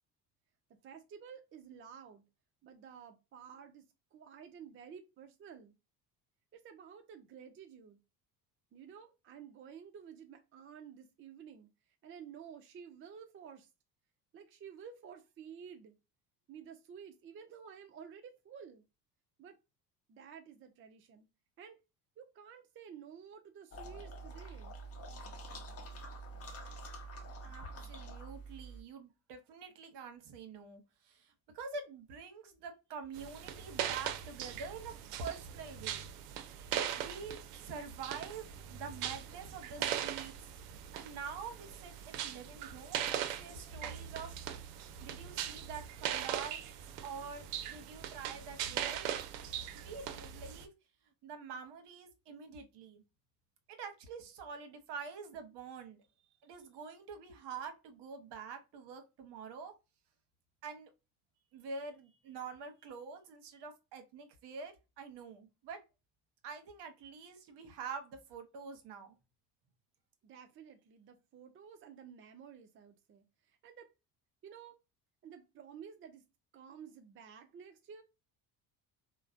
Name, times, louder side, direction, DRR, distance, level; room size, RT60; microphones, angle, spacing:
voice 1, 0.8-2.2 2.6-3.8 4.1-5.7 6.5-8.0 8.7-11.7 12.0-13.7 14.3-15.9 16.5-18.8 19.4-19.6 20.1-21.3 21.6-21.8 22.2-24.8 70.2-73.9 74.4-74.8 75.2-76.3 76.5-78.0, right 7 dB, 25° right, 0.4 m, -52 dB
sound 1, 23.7-28.8, right 2 dB, 30° left, 0.7 m, -47 dB
voice 2, 27.4-34.9 35.2-36.1 36.6-40.5 40.9-44.3 45.0-46.6 47.0-49.1 49.7-50.7 51.2-53.0 53.7-56.0 56.4-59.7 60.6-60.9 61.5-65.8 66.4-69.2, right 5 dB, 55° right, 0.9 m, -46 dB
sound 2, 33.1-50.6, right 10 dB, 75° right, 0.6 m, -40 dB
3.1 x 2.1 x 2.4 m
hypercardioid pair, 65°, 48 cm